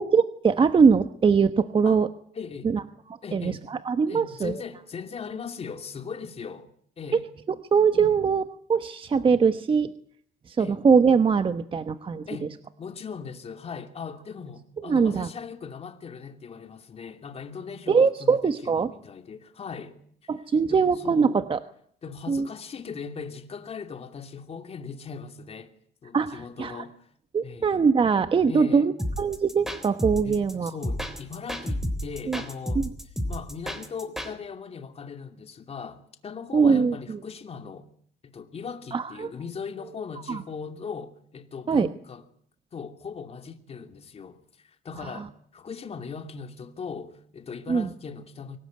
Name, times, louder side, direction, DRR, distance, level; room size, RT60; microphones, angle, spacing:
voice 1, 0.0-2.1 2.6-2.8 3.1-4.5 7.7-8.4 8.7-9.9 10.5-12.2 14.8-15.3 17.9-18.9 20.3-21.6 22.3-22.5 26.1-26.8 27.3-30.7 32.3-32.4 32.7-32.9 36.5-37.2 38.9-39.3 40.3-40.4 41.7-41.9 45.0-45.2 47.7-47.9, right 5 dB, 30° right, 1.1 m, -22 dB
voice 2, 2.3-2.7 3.2-3.6 4.1-6.7 7.0-7.3 7.9-8.1 10.6-10.8 12.3-20.3 20.6-21.4 22.0-25.7 26.0-27.1 27.4-27.7 28.5-28.9 30.2-32.8 33.3-37.9 38.2-42.2 42.7-48.6, left 6 dB, 35° left, 2.8 m, -39 dB
sound 1, 29.0-34.3, equal, ahead, 3.5 m, -31 dB
24.5 x 18.5 x 9.6 m
cardioid pair, 110°, 17 cm